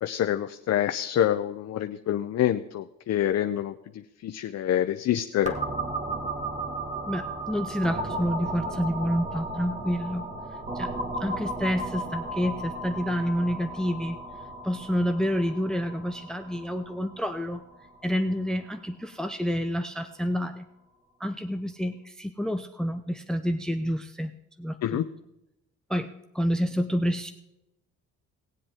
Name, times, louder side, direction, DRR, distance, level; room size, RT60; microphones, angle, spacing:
voice 1, 0.0-5.6 24.8-25.0, left 11 dB, 60° left, 8 dB, 0.7 m, -27 dB
sound 1, 5.4-19.0, right 2 dB, 25° right, 1.8 m, -35 dB
voice 2, 7.1-10.2 10.7-10.9 11.2-14.2 14.6-17.6 18.0-20.7 21.2-24.3 24.6-25.0 25.9-27.3, equal, ahead, 9 dB, 0.7 m, -28 dB
19.0 x 7.7 x 3.6 m, 0.88 s
cardioid pair, 90°, 30 cm